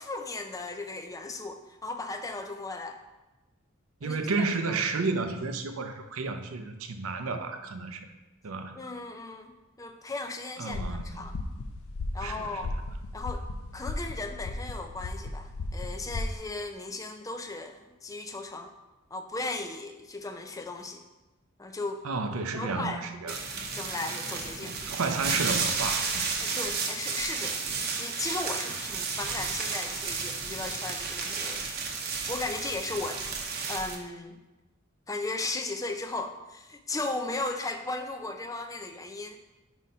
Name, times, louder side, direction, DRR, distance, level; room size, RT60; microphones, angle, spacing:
voice 1, 0.0-3.0 4.0-4.8 8.7-11.4 12.1-12.7 13.1-13.5 13.7-18.7 19.1-21.0 21.6-22.0 22.3-23.4 23.7-24.7 26.4-31.7 32.3-34.4 35.1-39.4, left 2 dB, 15° left, 6 dB, 0.4 m, -36 dB
voice 2, 4.0-8.1 8.4-8.9 10.6-11.2 12.2-12.5 22.0-23.4 24.6-26.3, right 4 dB, 80° right, 7 dB, 0.6 m, -32 dB
sound 1, 10.7-16.4, left 2 dB, 80° left, 0.5 m, -36 dB
sound 2, 23.3-34.0, right 5 dB, 50° right, 0.8 m, -32 dB
4.8 x 4.2 x 5.4 m, 1.1 s
head